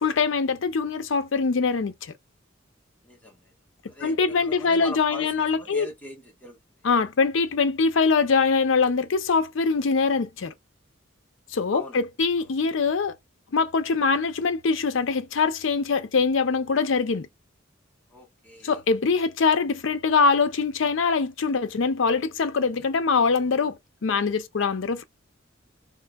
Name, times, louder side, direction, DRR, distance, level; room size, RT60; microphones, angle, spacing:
voice 1, 0.0-2.1 4.0-5.9 6.8-10.5 11.5-13.1 13.5-17.3 18.6-25.0, left 4 dB, 70° left, 0.5 m, -23 dB
voice 2, 3.0-3.5 3.9-6.6 11.7-12.0 12.4-12.5 18.1-18.8, left 2 dB, 10° left, 1.2 m, -41 dB
3.7 x 2.6 x 2.2 m
head